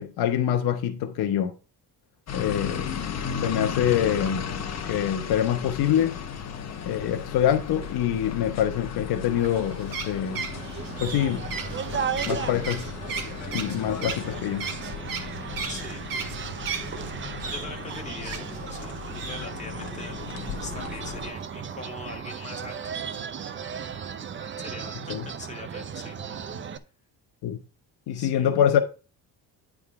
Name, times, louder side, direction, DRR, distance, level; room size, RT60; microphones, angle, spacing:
voice 1, 0.0-1.5 2.3-3.0 3.3-4.5 4.8-6.2 6.8-10.4 11.0-11.5 12.2-12.9 13.5-14.7 25.1-25.3 27.4-27.6 28.1-28.8, left 10 dB, 75° left, 1.0 m, -25 dB
sound 1, 2.3-21.3, left 7 dB, 45° left, 1.2 m, -36 dB
sound 2, 9.4-17.0 17.4-18.8 19.2-19.5, right 5 dB, 60° right, 1.8 m, -35 dB
sound 3, 10.5-26.8, right 7 dB, 30° right, 0.6 m, -36 dB
voice 2, 15.7-16.0 17.1-22.9 24.6-26.2 26.5-26.7 28.1-28.5, left 3 dB, 20° left, 2.1 m, -42 dB
9.8 x 3.8 x 4.7 m
cardioid pair, 120°, 38 cm